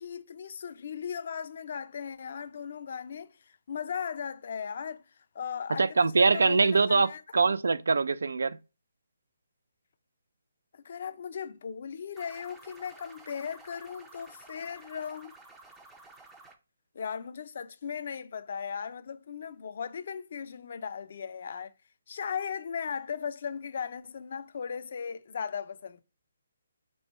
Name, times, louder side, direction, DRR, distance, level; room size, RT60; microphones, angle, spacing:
voice 1, 0.0-5.0 5.3-7.2 10.7-15.3 16.9-21.7 22.1-26.0, left 7 dB, 50° left, 0.4 m, -37 dB
voice 2, 5.8-8.6, right 4 dB, 80° right, 0.3 m, -23 dB
sound 1, 12.2-16.6, right 3 dB, 5° right, 0.4 m, -52 dB
3.5 x 3.1 x 4.1 m
hypercardioid pair, 165°, 0 cm